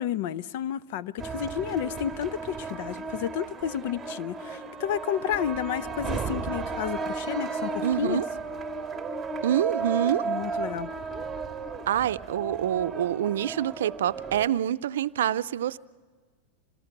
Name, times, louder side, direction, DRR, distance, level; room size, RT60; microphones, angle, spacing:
voice 1, 0.0-8.2 10.2-11.0, left 10 dB, 65° left, 0.6 m, -31 dB
sound 1, 1.2-14.5, right 4 dB, 15° right, 1.8 m, -34 dB
voice 2, 7.8-8.3 9.4-10.3 11.9-15.8, right 11 dB, 85° right, 0.5 m, -26 dB
26.5 x 18.5 x 6.0 m
hypercardioid pair, 120°, 0 cm